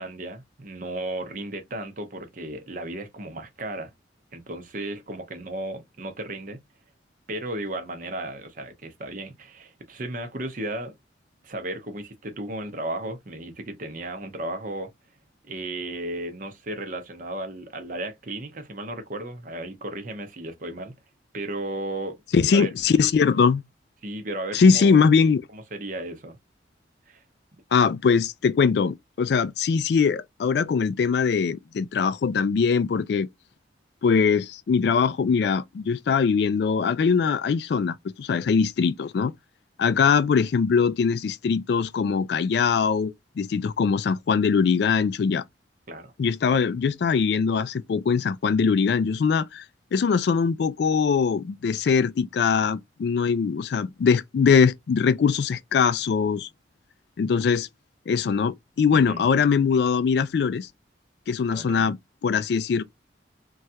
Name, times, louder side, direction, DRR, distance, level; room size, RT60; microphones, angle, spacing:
voice 1, 0.0-3.9 4.3-6.6 7.3-10.9 11.4-14.9 15.4-21.0 21.3-22.2 22.5-22.7 24.0-25.0 25.5-26.4 27.1-27.2 45.9-46.1 58.9-59.2 61.5-61.9, right 1 dB, 45° right, 0.7 m, -34 dB
voice 2, 22.3-23.6 24.5-25.4 27.7-33.3 34.0-39.3 39.8-45.4 46.2-49.6 49.9-56.5 57.2-57.7 58.1-60.7 61.3-62.8, left 5 dB, 60° left, 0.3 m, -22 dB
3.1 x 2.3 x 2.7 m
head